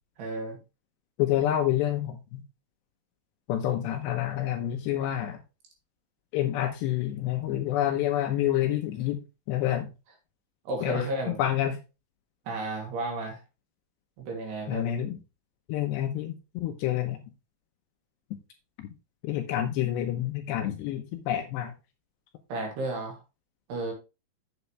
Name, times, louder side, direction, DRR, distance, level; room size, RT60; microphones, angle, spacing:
voice 1, 0.2-0.6 10.7-11.4 12.5-13.4 14.2-14.9 22.5-23.2 23.7-23.9, right 2 dB, 60° right, 1 dB, 4.5 m, -33 dB
voice 2, 1.2-2.4 3.5-5.4 6.3-9.2 9.5-9.9 10.8-11.8 14.7-15.2 15.7-17.2 19.2-21.7, left 12 dB, 80° left, 6 dB, 2.7 m, -28 dB
8.1 x 8.1 x 3.2 m, 0.28 s
omnidirectional pair, 5.6 m